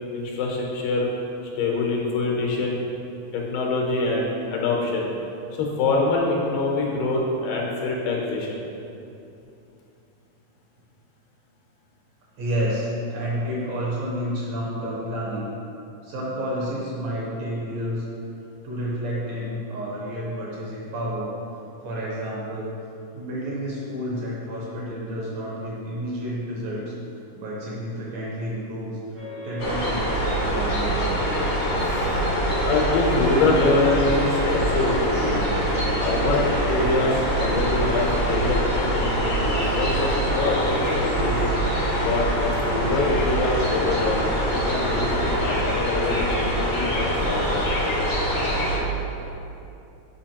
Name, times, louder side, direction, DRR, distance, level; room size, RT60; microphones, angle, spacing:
voice 1, 0.1-1.1 1.6-2.8 3.3-5.1 5.6-8.6 31.9-32.1 32.7-35.5 36.0-41.4 42.0-44.2 44.5-47.7, left 3 dB, 90° left, -2 dB, 2.6 m, -25 dB
voice 2, 12.4-15.4 16.0-18.1 18.6-21.3 21.8-22.7 23.1-26.9 27.3-31.2, equal, 70° right, -5 dB, 1.9 m, -30 dB
sound 1, 29.1-36.7, equal, 50° right, 0.8 m, -36 dB
sound 2, 29.6-48.8, equal, 50° left, 0.8 m, -24 dB
7.6 x 5.0 x 2.9 m, 2.7 s
omnidirectional pair, 3.7 m